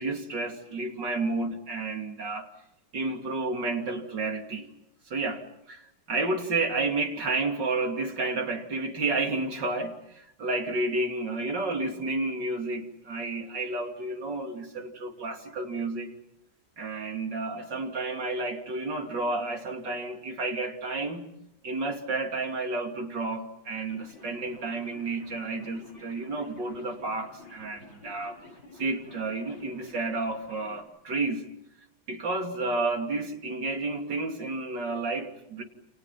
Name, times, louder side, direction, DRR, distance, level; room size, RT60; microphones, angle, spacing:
voice 1, 0.0-2.5 2.9-4.7 5.1-16.1 16.8-21.3 21.6-28.4 28.8-31.5 32.1-35.6, right 3 dB, 60° right, 2 dB, 3.6 m, -31 dB
sound 1, 23.7-30.8, left 3 dB, 75° left, 7.0 m, -51 dB
29.5 x 29.0 x 5.9 m, 0.82 s
omnidirectional pair, 2.2 m